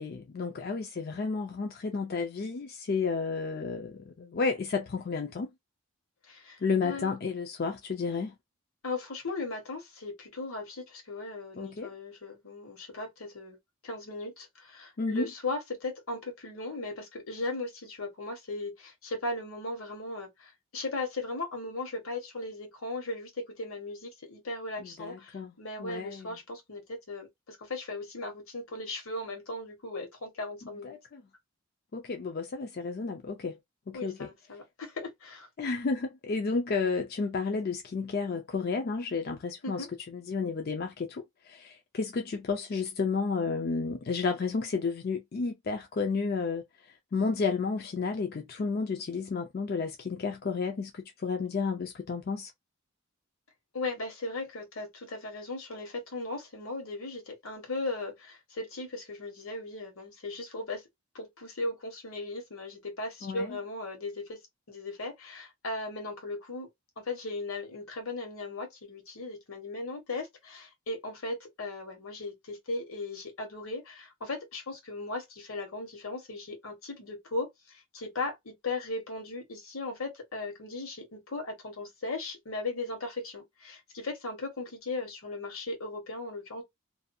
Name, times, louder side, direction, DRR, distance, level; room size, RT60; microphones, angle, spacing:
voice 1, 0.0-5.5 6.6-8.3 11.5-11.9 15.0-15.3 24.8-25.5 25.8-26.3 30.6-31.2 31.9-33.6 33.9-34.3 35.6-52.5 63.2-63.6, left 4 dB, 45° left, 0.4 m, -32 dB
voice 2, 6.2-7.1 8.8-13.6 13.8-31.0 33.9-35.5 39.6-39.9 53.7-60.8 61.1-64.4 64.7-66.7 67.0-86.6, left 2 dB, 80° left, 1.2 m, -37 dB
2.6 x 2.3 x 2.6 m
head